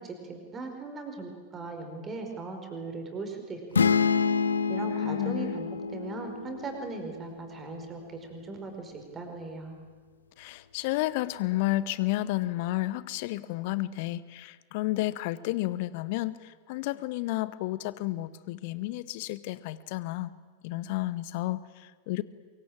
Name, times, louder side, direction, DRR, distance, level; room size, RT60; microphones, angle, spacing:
voice 1, 0.0-4.0 4.7-9.8, right 3 dB, 20° right, 4 dB, 5.0 m, -39 dB
sound 1, 3.7-7.5, left 5 dB, 70° left, 0.9 m, -28 dB
voice 2, 5.0-5.6 10.4-20.3 20.6-22.2, left 17 dB, 50° left, 17 dB, 1.0 m, -31 dB
24.0 x 22.5 x 8.8 m, 1.5 s
figure-of-eight pair, 90°, 0 cm